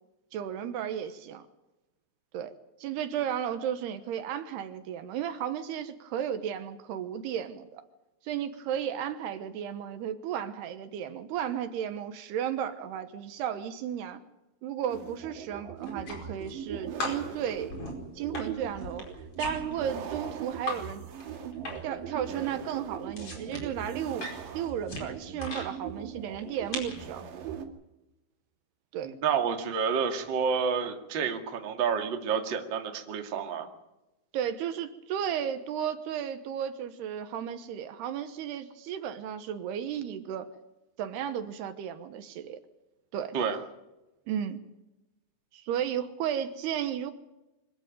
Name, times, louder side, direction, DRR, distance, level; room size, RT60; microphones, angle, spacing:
voice 1, 0.3-1.4 2.3-2.5 2.8-7.8 8.2-14.2 14.6-17.8 18.2-19.1 19.4-21.0 21.8-27.3 28.9-29.2 34.3-40.5 41.0-42.6 43.1-43.4 44.3-44.6 45.5-47.1, right 9 dB, 75° right, 10 dB, 3.0 m, -34 dB
sound 1, 14.9-27.7, right 8 dB, 90° right, 4.6 m, -40 dB
sound 2, 15.8-16.7 17.0-20.8 21.1-22.0 22.3-25.7 26.3-27.0, left 2 dB, 35° left, 5.6 m, -39 dB
voice 2, 29.0-33.7 43.3-43.6, right 6 dB, 35° right, 4 dB, 2.0 m, -29 dB
24.5 x 14.5 x 9.1 m, 0.97 s
omnidirectional pair, 5.0 m